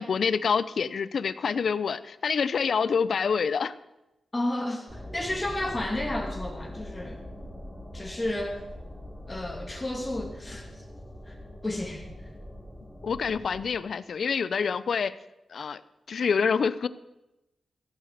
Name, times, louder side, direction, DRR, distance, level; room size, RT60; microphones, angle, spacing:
voice 1, 0.0-3.7 13.0-15.1 15.5-15.8 16.1-16.9, left 6 dB, 70° left, 16 dB, 0.6 m, -27 dB
voice 2, 4.3-7.2 7.9-8.6 9.3-10.7 11.3-11.4 11.6-12.0, left 1 dB, 25° left, 2 dB, 2.6 m, -32 dB
sound 1, 4.9-13.8, left 1 dB, 5° left, 2.8 m, -42 dB
15.5 x 9.1 x 6.6 m, 0.95 s
wide cardioid pair, 95°, 0 cm